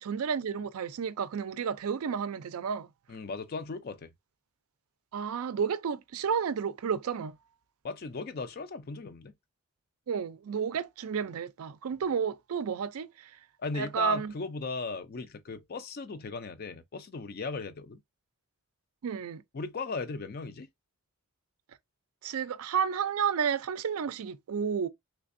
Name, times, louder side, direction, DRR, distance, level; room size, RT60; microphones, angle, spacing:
voice 1, 0.0-2.9 5.1-7.4 10.1-13.3 13.7-14.3 19.0-19.4 22.2-24.9, right 7 dB, 75° right, 0.4 m, -31 dB
voice 2, 3.1-4.1 7.8-9.3 13.6-18.0 19.5-20.7, left 4 dB, 45° left, 0.4 m, -37 dB
3.3 x 3.3 x 2.5 m
head